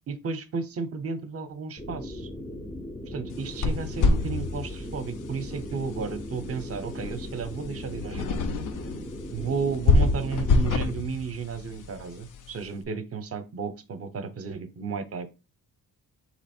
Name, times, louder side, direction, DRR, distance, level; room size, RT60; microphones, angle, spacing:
voice 1, 0.1-2.3 3.1-8.6 9.3-15.3, right 5 dB, 40° right, 11 dB, 0.7 m, -33 dB
sound 1, 1.8-10.9, left 1 dB, 10° left, 0.4 m, -38 dB
sound 2, 3.3-12.7, left 3 dB, 60° left, 0.5 m, -28 dB
3.8 x 3.0 x 4.2 m, 0.28 s
wide cardioid pair, 160°, 36 cm